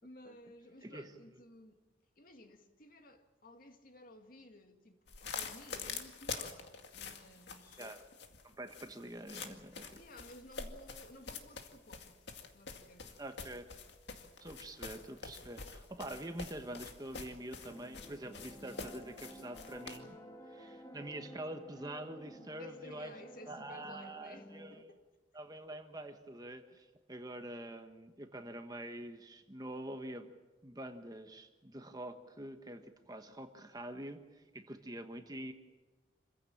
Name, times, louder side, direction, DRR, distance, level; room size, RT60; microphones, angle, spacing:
voice 1, 0.0-1.8 2.2-7.9 9.9-12.2 12.5-13.2 22.6-25.1, left 1 dB, 50° left, 2.2 m, -56 dB
sound 1, 5.1-20.0, left 5 dB, 65° left, 2.1 m, -46 dB
voice 2, 8.4-10.0 13.2-13.7 14.4-20.2 20.5-23.1 23.5-24.9 25.3-30.3 30.6-35.5, right 1 dB, 20° right, 1.3 m, -46 dB
sound 2, 17.6-24.8, equal, 20° left, 1.8 m, -53 dB
27.0 x 15.5 x 8.7 m
head